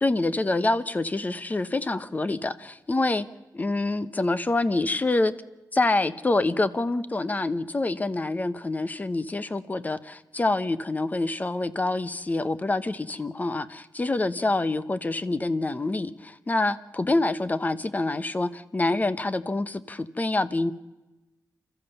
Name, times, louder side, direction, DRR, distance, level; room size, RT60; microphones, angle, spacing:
voice 1, 0.0-3.3 3.5-5.3 5.7-20.7, left 2 dB, 25° left, 14 dB, 1.0 m, -26 dB
29.5 x 14.0 x 7.0 m, 1.1 s
wide cardioid pair, 110°, 7 cm